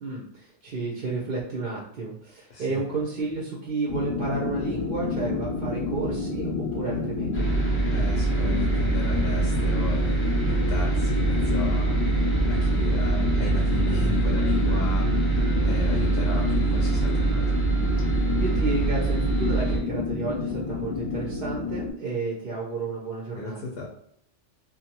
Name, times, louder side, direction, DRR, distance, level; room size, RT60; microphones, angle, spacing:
voice 1, 0.0-7.6 18.0-23.6, right 3 dB, 55° right, -3 dB, 0.7 m, -32 dB
voice 2, 2.5-2.8 7.9-17.6 23.3-23.9, left 4 dB, 60° left, -1 dB, 0.7 m, -34 dB
sound 1, 3.9-21.9, left 4 dB, 85° left, 1.0 m, -29 dB
extremely terrifying drone, 7.3-19.8, right 3 dB, 15° left, 0.6 m, -24 dB
2.7 x 2.2 x 2.8 m, 0.69 s
omnidirectional pair, 1.2 m